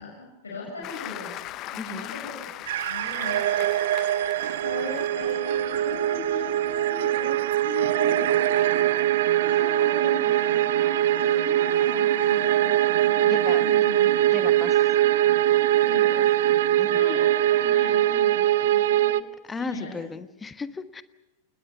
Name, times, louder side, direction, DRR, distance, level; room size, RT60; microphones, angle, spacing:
voice 1, 0.0-1.3 1.7-7.3 7.6-14.1 15.8-16.3 16.9-19.2 19.6-20.0, left 3 dB, 75° left, -2 dB, 6.8 m, -39 dB
Applause, 0.8-5.3 5.8-6.0, left 15 dB, 35° left, 0.8 m, -39 dB
voice 2, 1.8-2.1 13.2-13.6 14.3-14.9 16.8-17.0 19.5-21.0, left 4 dB, 15° left, 13 dB, 1.2 m, -35 dB
sound 1, 2.7-19.2, right 13 dB, 55° right, 0.7 m, -22 dB
28.0 x 20.0 x 7.1 m, 1.0 s
figure-of-eight pair, 90°, 0 cm